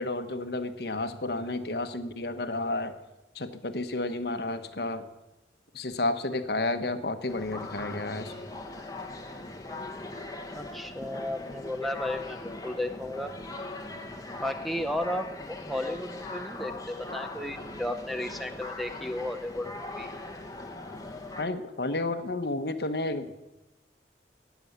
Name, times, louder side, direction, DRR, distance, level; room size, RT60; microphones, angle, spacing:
voice 1, 0.0-2.9 3.3-5.1 5.7-8.3 21.4-23.4, left 2 dB, 65° left, 9 dB, 1.1 m, -31 dB
sound 1, 7.3-21.4, left 2 dB, 20° left, 1.4 m, -40 dB
voice 2, 10.5-13.3 14.4-20.1, left 1 dB, ahead, 5 dB, 0.7 m, -34 dB
18.0 x 7.1 x 9.4 m, 1.0 s
head